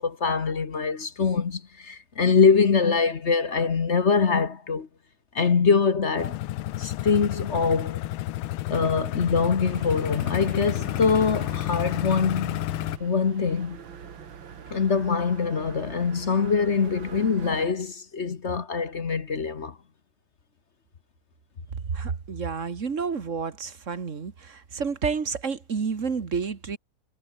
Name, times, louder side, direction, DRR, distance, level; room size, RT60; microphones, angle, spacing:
voice 1, 0.0-4.9 5.3-6.4 6.8-8.0 8.7-12.7 13.0-13.8 14.7-19.8, left 5 dB, 40° left, 1.3 m, -24 dB
sound 1, 6.2-13.0, left 15 dB, 90° left, 1.5 m, -30 dB
sound 2, 9.6-17.7, right 7 dB, 75° right, 2.6 m, -44 dB
voice 2, 21.9-26.8, right 5 dB, 40° right, 1.9 m, -30 dB
omnidirectional pair, 2.2 m